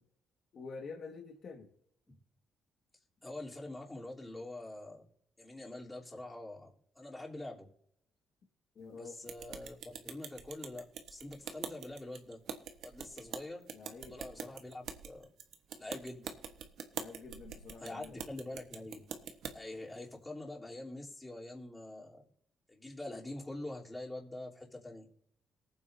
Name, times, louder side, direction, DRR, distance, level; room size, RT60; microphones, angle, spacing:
voice 1, 0.5-1.7 8.8-9.1 13.7-14.2 16.9-18.2, left 4 dB, 55° left, 1 dB, 1.8 m, -47 dB
voice 2, 3.2-5.1 5.4-6.7 7.0-7.7 8.9-12.4 12.8-13.7 14.1-15.3 15.8-16.3 17.8-19.0 19.5-22.2 22.7-25.1, left 2 dB, 15° left, -3 dB, 3.4 m, -45 dB
sound 1, 9.3-19.5, right 7 dB, 75° right, 1.2 m, -45 dB
19.5 x 8.9 x 2.7 m, 0.72 s
cardioid pair, 90°, 0 cm